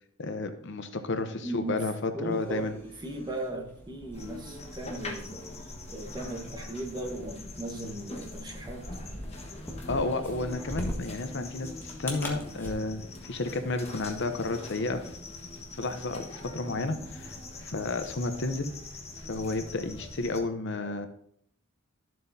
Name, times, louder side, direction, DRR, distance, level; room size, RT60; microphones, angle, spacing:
voice 1, 0.2-2.8 9.9-15.1 15.7-17.3 17.6-18.7 19.3-21.1, left 2 dB, 60° left, 8 dB, 0.8 m, -32 dB
voice 2, 1.4-1.9 2.1-5.4 5.9-8.9 18.4-18.5 20.8-20.9, right 2 dB, 20° right, 2 dB, 1.3 m, -37 dB
sound 1, 2.3-12.7, equal, 10° left, 1.6 m, -43 dB
sound 2, 4.1-20.4, left 2 dB, 30° left, 1.4 m, -43 dB
12.0 x 7.6 x 2.8 m, 0.67 s
head